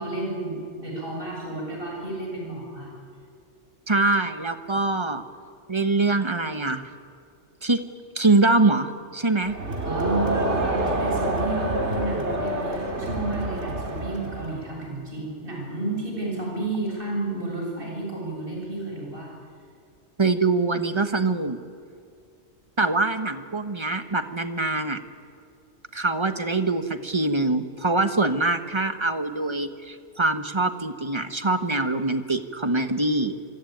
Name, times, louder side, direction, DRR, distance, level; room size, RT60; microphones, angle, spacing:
voice 1, 0.0-2.9 9.8-19.3, right 2 dB, 50° right, -2 dB, 7.2 m, -31 dB
voice 2, 3.9-5.2 5.7-6.8 7.6-7.8 8.1-9.5 20.2-21.6 22.8-25.0 25.9-33.4, right 2 dB, 25° right, 9 dB, 1.3 m, -23 dB
Crowd, 9.5-14.6, right 1 dB, 65° right, 3.1 m, -27 dB
26.0 x 24.0 x 9.3 m, 2.3 s
omnidirectional pair, 1.2 m